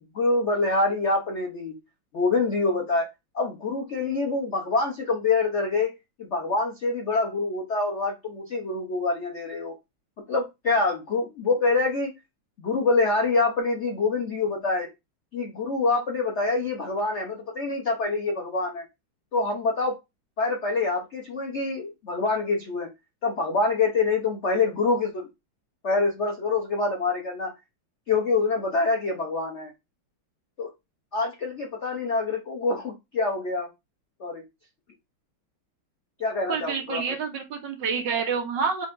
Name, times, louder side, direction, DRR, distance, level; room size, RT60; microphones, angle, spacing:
voice 1, 0.1-1.8 2.1-3.1 3.3-5.9 6.2-9.7 10.3-12.1 12.6-14.9 15.3-18.8 19.3-20.0 20.4-22.9 23.2-25.3 25.8-27.5 28.1-29.7 30.6-30.7 31.1-33.7 34.2-34.4 36.2-37.0, left 3 dB, 70° left, 2 dB, 0.6 m, -25 dB
voice 2, 36.5-38.9, right 5 dB, 60° right, 4 dB, 1.4 m, -28 dB
6.7 x 2.7 x 2.5 m, 0.22 s
omnidirectional pair, 2.4 m